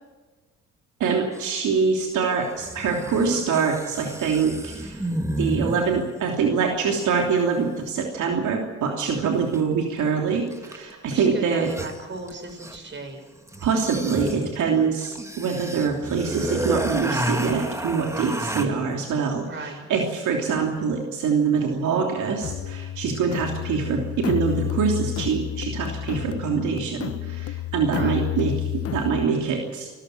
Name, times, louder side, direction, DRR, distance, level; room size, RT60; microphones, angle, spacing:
voice 1, 1.0-5.0 5.4-11.7 13.6-29.9, right 5 dB, 75° right, 1 dB, 3.2 m, -24 dB
sound 1, 1.3-1.4 2.6-6.1 9.5-9.6 10.5-10.9 11.2-11.3 11.5-12.9 13.5-18.7, right 1 dB, 10° right, 2.1 m, -31 dB
voice 2, 11.1-13.2 19.4-19.8 27.9-28.2, right 2 dB, 40° right, 5 dB, 6.3 m, -36 dB
sound 2, 22.4-29.3, left 12 dB, 50° left, 1.0 m, -30 dB
27.5 x 14.5 x 7.8 m, 1.3 s
cardioid pair, 90°, 30 cm